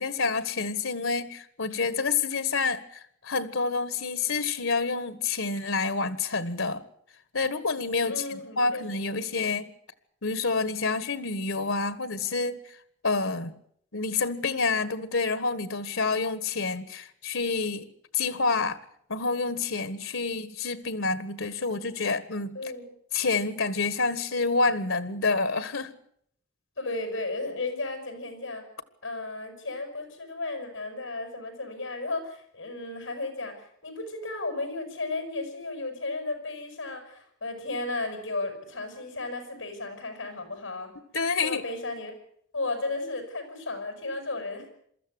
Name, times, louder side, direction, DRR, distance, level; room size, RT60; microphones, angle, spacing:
voice 1, 0.0-6.8 7.3-9.7 10.2-12.6 13.0-13.5 13.9-17.9 18.1-18.8 19.1-22.6 23.1-25.9 41.1-41.6, left 4 dB, 85° left, 14 dB, 1.6 m, -28 dB
voice 2, 8.0-9.2 22.5-22.9 26.8-28.6 29.0-40.9 41.4-42.1 42.5-44.7, left 2 dB, 65° left, 6 dB, 6.6 m, -34 dB
23.5 x 13.5 x 9.6 m, 0.68 s
head